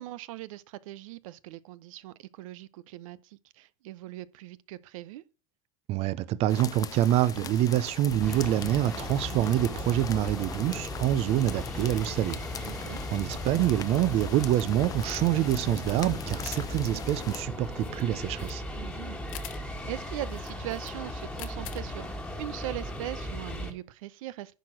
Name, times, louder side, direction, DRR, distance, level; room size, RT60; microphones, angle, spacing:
voice 1, 0.0-5.2 9.1-9.4 12.6-13.0 18.7-22.1 22.4-24.5, right 15 dB, 75° right, 0.7 m, -40 dB
voice 2, 5.9-18.6, right 13 dB, 35° right, 0.5 m, -26 dB
sound 1, 6.5-17.5, left 8 dB, 20° left, 0.6 m, -41 dB
sound 2, 8.1-23.7, equal, 5° left, 1.5 m, -37 dB
sound 3, 15.2-22.5, left 14 dB, 75° left, 1.1 m, -48 dB
10.5 x 4.7 x 6.1 m
supercardioid pair, 140°, 17 cm